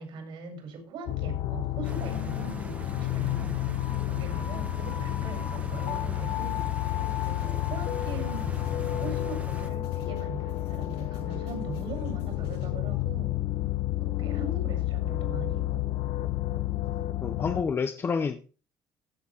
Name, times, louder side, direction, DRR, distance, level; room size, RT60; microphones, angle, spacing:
voice 1, 0.0-6.6 7.1-8.6 8.9-13.4 14.0-15.8, right 4 dB, 65° right, 5 dB, 5.0 m, -41 dB
sound 1, 1.1-17.6, left 15 dB, 70° left, 1.1 m, -30 dB
Stream, 1.8-9.7, right 3 dB, 15° right, 1.3 m, -42 dB
sound 2, 6.4-13.0, left 8 dB, 90° left, 6.0 m, -50 dB
voice 2, 17.2-18.5, left 5 dB, 25° left, 9 dB, 0.7 m, -30 dB
15.5 x 7.1 x 4.4 m, 0.35 s
cardioid pair, 170°, 9 cm